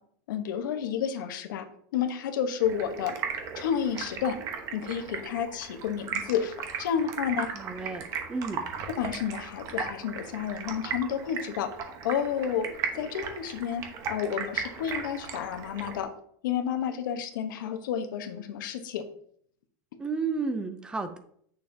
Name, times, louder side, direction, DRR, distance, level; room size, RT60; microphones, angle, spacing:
voice 1, 0.3-1.7 1.9-3.2 3.5-4.4 4.7-7.5 9.0-11.7 12.0-16.1 16.4-19.1, left 8 dB, 85° left, 7 dB, 1.0 m, -30 dB
Stream, 2.6-16.0, right 6 dB, 30° right, 1.0 m, -37 dB
voice 2, 7.5-8.7 20.0-21.2, right 4 dB, 10° right, 8 dB, 0.4 m, -32 dB
8.6 x 6.4 x 2.7 m, 0.65 s
supercardioid pair, 175°, 10 cm